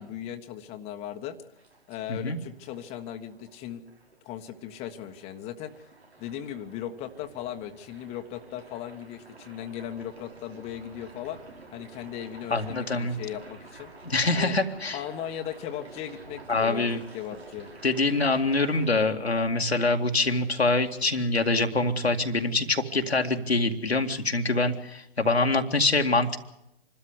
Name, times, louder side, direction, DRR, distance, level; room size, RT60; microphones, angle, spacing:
voice 1, 0.0-1.4 1.9-3.8 4.2-5.9 6.2-11.4 11.7-13.9 14.3-14.6 14.9-17.7, left 10 dB, 20° left, 5 dB, 1.3 m, -37 dB
sound 1, 1.6-18.9, right 3 dB, 85° right, 6.8 m, -50 dB
voice 2, 12.5-13.1 14.0-15.0 16.5-17.0 17.8-26.4, left 2 dB, 90° left, 4 dB, 2.2 m, -25 dB
26.0 x 13.0 x 9.7 m, 0.84 s
figure-of-eight pair, 130°, 31 cm